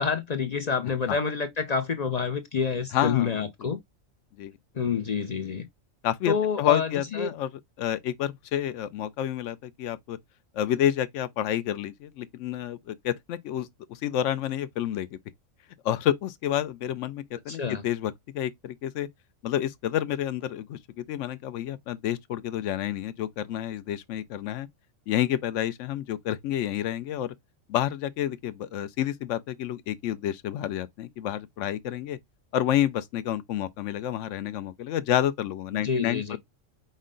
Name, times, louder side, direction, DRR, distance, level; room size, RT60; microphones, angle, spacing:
voice 1, 0.0-3.8 4.7-5.6 6.3-7.3 17.5-17.8 35.7-36.4, left 6 dB, 50° left, 0.4 m, -28 dB
voice 2, 2.9-3.3 4.4-4.5 6.0-7.5 7.8-10.2 10.5-15.2 15.8-19.1 19.4-24.7 25.1-27.3 27.7-32.2 32.5-36.4, left 11 dB, 70° left, 0.9 m, -29 dB
5.4 x 2.1 x 3.7 m
omnidirectional pair, 1.4 m